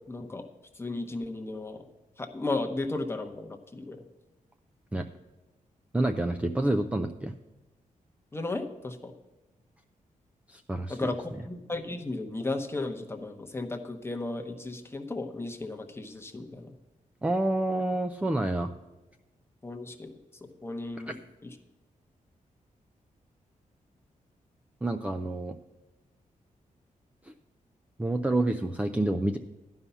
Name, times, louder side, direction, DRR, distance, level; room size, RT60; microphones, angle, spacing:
voice 1, 0.1-0.5 0.8-1.8 2.2-4.0 8.3-9.1 10.9-16.8 19.6-21.2 21.4-21.5, left 2 dB, 15° left, 5 dB, 0.9 m, -35 dB
voice 2, 5.9-7.3 10.5-11.1 17.2-18.7 21.1-21.2 24.8-25.6 27.2-27.3 28.0-29.4, right 2 dB, 10° right, 6 dB, 0.4 m, -28 dB
11.0 x 5.6 x 7.0 m, 1.1 s
wide cardioid pair, 145°, 14 cm